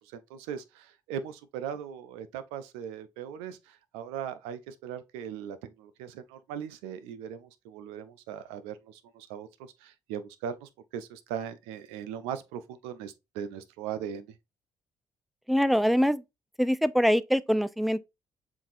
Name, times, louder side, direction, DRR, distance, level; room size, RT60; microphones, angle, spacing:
voice 1, 0.0-14.4, right 8 dB, 90° right, 0.5 m, -39 dB
voice 2, 15.5-16.2 16.6-18.0, equal, ahead, 0.4 m, -24 dB
7.1 x 2.6 x 2.6 m
supercardioid pair, 55°, 10 cm